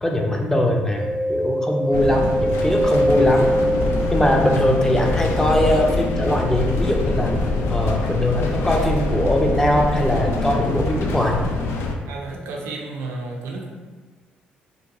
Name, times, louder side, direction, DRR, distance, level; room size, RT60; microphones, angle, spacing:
voice 1, 0.0-3.5 4.1-7.3 7.7-11.4, left 1 dB, 10° left, 0 dB, 0.5 m, -21 dB
Mallet percussion, 1.0-10.6, equal, 85° left, 1.3 m, -26 dB
sound 1, 1.9-11.9, left 3 dB, 65° left, 0.3 m, -25 dB
sound 2, 3.5-11.1, equal, 45° left, 0.8 m, -32 dB
voice 2, 12.1-13.7, right 3 dB, 70° right, -1 dB, 0.5 m, -32 dB
2.8 x 2.2 x 2.7 m, 1.4 s
hypercardioid pair, 45°, 4 cm